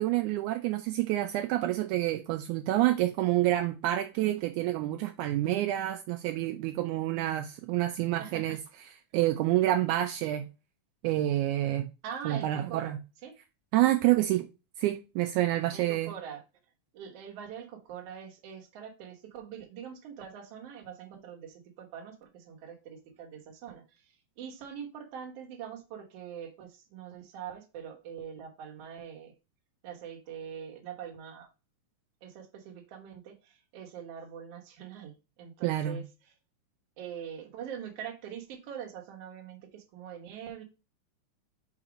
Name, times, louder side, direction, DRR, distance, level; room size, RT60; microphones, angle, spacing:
voice 1, 0.0-8.6 9.1-10.5 11.0-11.9 12.3-13.0 13.7-14.5 14.8-16.1 35.6-36.0, right 14 dB, 80° right, 1.9 m, -28 dB
voice 2, 8.2-8.6 12.0-13.3 15.7-16.4 16.9-29.3 29.8-31.5 32.2-36.3 37.0-40.6, right 8 dB, 60° right, 1.9 m, -43 dB
4.9 x 4.1 x 5.0 m
omnidirectional pair, 3.6 m